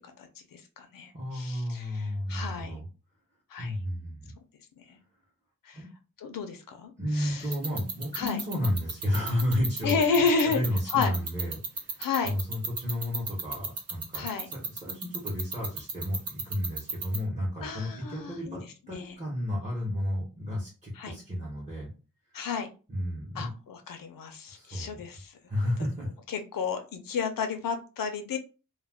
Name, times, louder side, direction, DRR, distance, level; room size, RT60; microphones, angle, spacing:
voice 1, 0.0-2.8 3.5-3.8 4.9-5.0 5.7-5.8 6.2-7.5 8.1-8.4 9.8-10.6 10.9-11.1 12.0-12.3 14.1-14.5 17.6-18.6 18.9-19.1 21.0-21.2 22.3-22.7 23.3-25.4 26.3-28.4, left 5 dB, 75° left, 6 dB, 0.6 m, -31 dB
voice 2, 1.1-2.8 3.6-4.3 5.7-5.9 7.0-21.9 22.9-23.5 24.5-25.0 25.5-26.1, left 1 dB, 20° right, -6 dB, 0.8 m, -32 dB
sound 1, 7.5-17.2, right 4 dB, 50° right, 0.5 m, -32 dB
2.3 x 2.2 x 3.3 m, 0.33 s
wide cardioid pair, 180°, 34 cm